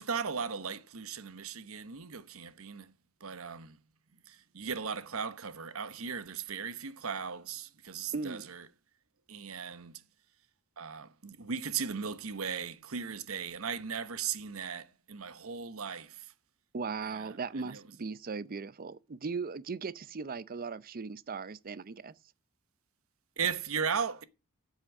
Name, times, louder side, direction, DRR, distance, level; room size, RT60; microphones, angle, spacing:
voice 1, 0.0-2.9 3.2-3.8 4.3-8.6 9.3-10.0 10.8-16.3 17.0-17.8 23.4-24.2, right 6 dB, 70° right, 1.0 m, -37 dB
voice 2, 8.1-8.5 16.7-22.1, right 4 dB, 40° right, 0.6 m, -38 dB
8.4 x 7.5 x 7.5 m
head